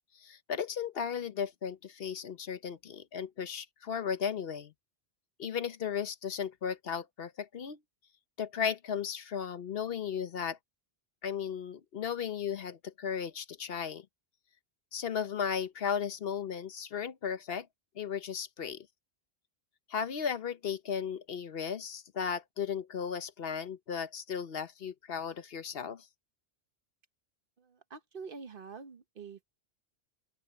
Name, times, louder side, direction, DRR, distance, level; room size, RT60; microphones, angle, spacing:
voice 1, 0.1-4.7 5.4-7.8 8.4-10.6 11.2-14.1 14.9-17.7 18.0-18.9 19.9-26.1, left 7 dB, 65° left, 1.0 m, -35 dB
voice 2, 27.6-29.4, right 5 dB, 55° right, 1.2 m, -46 dB
open air
omnidirectional pair, 1.1 m